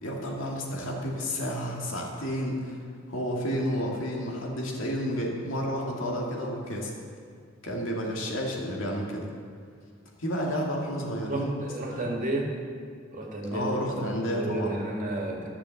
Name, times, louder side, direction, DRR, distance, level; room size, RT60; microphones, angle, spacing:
voice 1, 0.0-2.8 3.1-6.9 7.6-9.2 10.2-11.6 11.8-12.2 13.5-14.8, equal, 75° left, -2 dB, 2.2 m, -31 dB
voice 2, 11.3-12.5 13.1-15.5, right 2 dB, 40° right, 0 dB, 2.0 m, -32 dB
13.5 x 7.0 x 7.0 m, 2.1 s
head